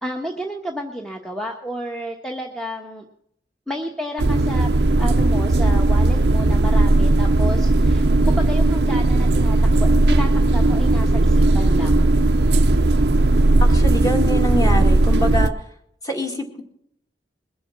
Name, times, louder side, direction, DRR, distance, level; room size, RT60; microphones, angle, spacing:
voice 1, 0.0-3.0 3.7-4.7 5.0-12.0, equal, 5° left, 1 dB, 1.1 m, -31 dB
sound 1, 4.2-15.5, right 2 dB, 70° right, 0.6 m, -17 dB
voice 2, 13.6-15.5 16.0-16.6, left 1 dB, 20° left, 3 dB, 2.3 m, -25 dB
21.5 x 7.8 x 6.1 m, 0.72 s
head